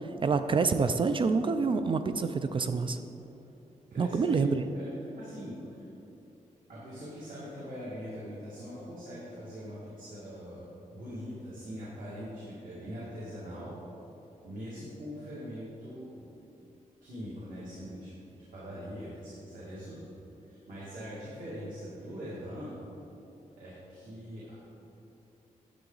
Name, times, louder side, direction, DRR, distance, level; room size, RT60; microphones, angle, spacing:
voice 1, 0.2-3.0 4.0-4.6, right 4 dB, 40° right, 9 dB, 0.4 m, -27 dB
voice 2, 3.9-5.9 6.7-10.7 10.9-13.7 14.4-16.3 17.0-20.1 20.5-22.8 23.6-24.6, equal, 90° right, -8 dB, 2.1 m, -42 dB
9.9 x 7.5 x 3.9 m, 2.9 s
wide cardioid pair, 140°, 13 cm